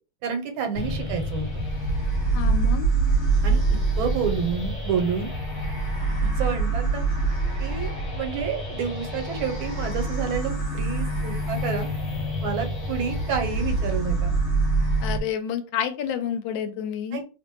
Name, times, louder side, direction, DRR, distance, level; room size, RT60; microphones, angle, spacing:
voice 1, 0.2-1.6 3.4-3.6 4.0-5.3 6.2-7.0 7.6-11.9 12.4-14.3 17.1-17.2, right 6 dB, 80° right, 5 dB, 1.5 m, -29 dB
sound 1, 0.7-15.2, right 2 dB, 55° left, 1.2 m, -26 dB
voice 2, 2.3-2.9 15.0-17.2, left 8 dB, 75° left, 8 dB, 1.2 m, -29 dB
3.1 x 2.5 x 2.9 m, 0.33 s
omnidirectional pair, 2.2 m